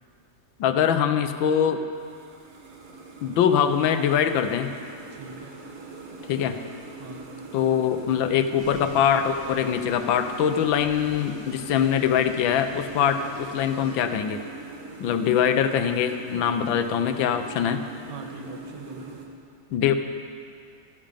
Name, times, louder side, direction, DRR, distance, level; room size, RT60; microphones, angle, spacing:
voice 1, 0.6-1.8 3.2-4.7 6.3-6.6 7.5-14.4 15.0-17.8 19.7-19.9, left 8 dB, 85° left, 8 dB, 1.5 m, -23 dB
sound 1, 1.9-19.3, right 3 dB, 45° right, 1.5 m, -42 dB
voice 2, 5.1-5.6 7.0-7.3 16.3-16.5 18.1-19.2, right 4 dB, 70° right, 4 dB, 1.6 m, -42 dB
sound 2, 8.6-14.0, equal, 15° right, 3.0 m, -48 dB
14.0 x 12.5 x 5.2 m, 2.3 s
omnidirectional pair, 2.1 m